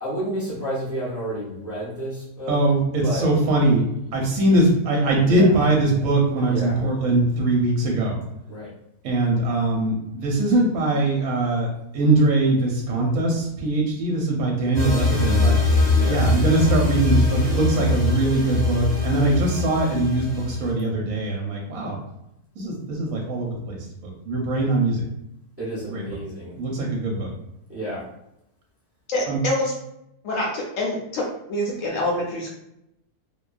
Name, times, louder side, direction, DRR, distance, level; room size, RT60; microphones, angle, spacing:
voice 1, 0.0-2.6 3.0-3.3 5.2-5.5 6.4-6.8 8.5-8.7 15.9-16.3 25.6-26.5 27.7-28.0, right 1 dB, 20° right, -9 dB, 0.4 m, -30 dB
voice 2, 2.5-3.8 4.1-8.2 9.0-15.6 16.1-22.0 22.6-25.0 25.9-26.0 26.6-27.3 29.3-29.4, right 2 dB, 70° right, -1 dB, 1.0 m, -21 dB
sound 1, 14.7-20.7, left 3 dB, 25° left, 0.8 m, -22 dB
voice 3, 29.1-29.7 30.2-31.2 31.5-32.5, left 1 dB, 65° left, -2 dB, 0.8 m, -26 dB
2.7 x 2.2 x 2.3 m, 0.81 s
omnidirectional pair, 1.7 m